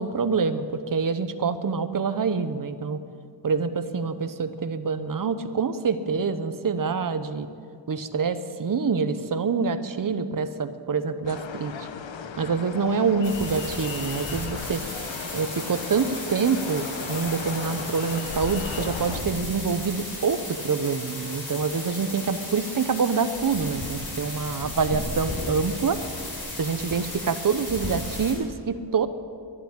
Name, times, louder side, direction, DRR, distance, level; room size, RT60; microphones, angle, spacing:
voice 1, 0.0-3.0 3.4-7.5 7.9-11.7 12.4-14.8 15.3-26.0 26.6-29.1, right 5 dB, 45° right, 11 dB, 0.8 m, -26 dB
sound 1, 11.2-19.2, left 6 dB, 85° left, 1.0 m, -37 dB
sound 2, 13.2-28.3, left 1 dB, 50° left, 4.5 m, -35 dB
11.5 x 11.0 x 9.9 m, 2.3 s
wide cardioid pair, 120°, 44 cm